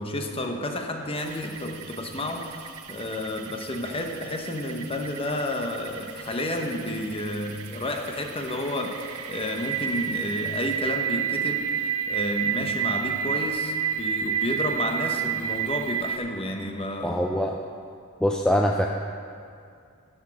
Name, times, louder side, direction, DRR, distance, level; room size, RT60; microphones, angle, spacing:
voice 1, 0.0-17.2, left 1 dB, 25° left, 3 dB, 0.9 m, -31 dB
sound 1, 1.2-16.2, right 8 dB, 75° right, 0.6 m, -31 dB
voice 2, 17.0-17.6 18.2-18.9, equal, 5° left, 1 dB, 0.3 m, -23 dB
11.0 x 6.2 x 5.8 m, 2.3 s
head